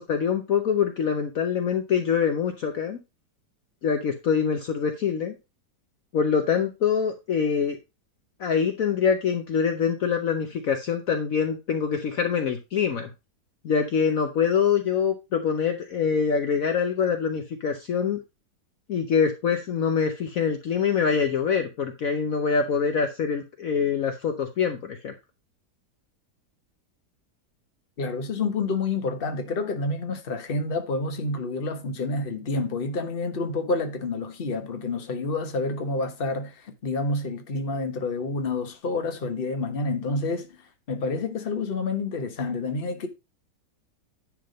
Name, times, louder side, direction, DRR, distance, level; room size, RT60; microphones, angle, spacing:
voice 1, 0.0-3.0 3.8-5.3 6.1-7.8 8.4-13.1 13.6-18.2 18.9-25.1, left 6 dB, 60° left, 1.2 m, -24 dB
voice 2, 28.0-40.5 40.9-43.1, left 3 dB, 35° left, 1.3 m, -28 dB
10.5 x 3.7 x 5.1 m
omnidirectional pair, 1.8 m